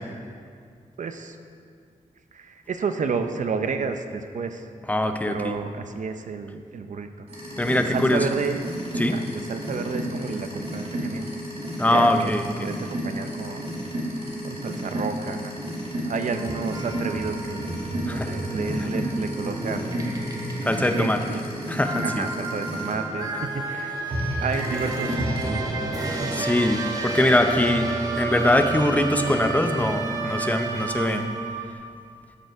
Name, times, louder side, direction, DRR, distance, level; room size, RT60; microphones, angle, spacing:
voice 1, 1.0-1.4 2.3-4.7 5.3-7.3 7.7-8.6 9.1-11.3 11.9-13.8 14.4-15.6 15.9-17.7 18.0-19.9 21.0-21.4 22.0-24.0 24.4-26.5, right 5 dB, 60° right, 7 dB, 0.6 m, -31 dB
voice 2, 4.9-5.5 7.6-8.2 9.0-9.1 11.8-12.4 18.1-18.3 20.6-21.2 21.7-22.3 26.1-31.3, left 1 dB, 10° left, 6 dB, 0.6 m, -22 dB
sound 1, 7.3-22.9 24.1-25.5, equal, 45° right, 2.0 m, -32 dB
sound 2, 16.3-31.7, right 2 dB, 25° right, 1.0 m, -31 dB
sound 3, 24.4-30.4, right 4 dB, 80° right, 1.6 m, -43 dB
12.5 x 6.7 x 4.7 m, 2.2 s
wide cardioid pair, 155°, 14 cm